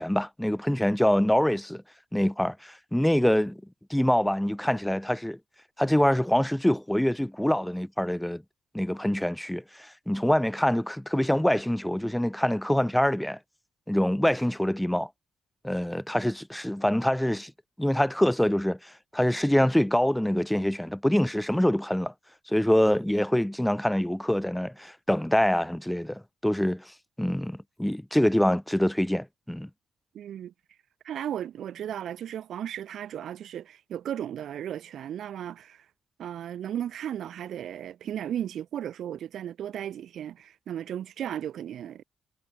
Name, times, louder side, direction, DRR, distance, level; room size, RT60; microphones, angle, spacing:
voice 1, 0.0-1.8 2.1-3.6 3.9-5.4 5.8-8.4 8.7-13.4 13.9-15.1 15.6-17.5 17.8-22.1 22.5-26.9 27.2-29.7, equal, 5° left, 0.4 m, -25 dB
voice 2, 30.1-30.5 31.0-35.9 36.2-42.0, right 10 dB, 75° right, 0.6 m, -35 dB
cardioid pair, 95°, 0 cm